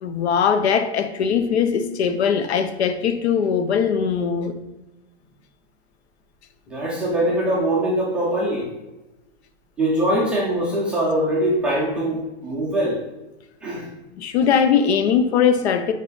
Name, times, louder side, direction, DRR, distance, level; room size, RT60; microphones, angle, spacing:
voice 1, 0.0-4.5 14.2-15.9, left 7 dB, 90° left, 0.8 m, -20 dB
voice 2, 6.7-8.7 9.8-13.0 13.6-14.1, right 1 dB, 5° right, 0.3 m, -22 dB
5.6 x 5.0 x 3.8 m
supercardioid pair, 170°, 32 cm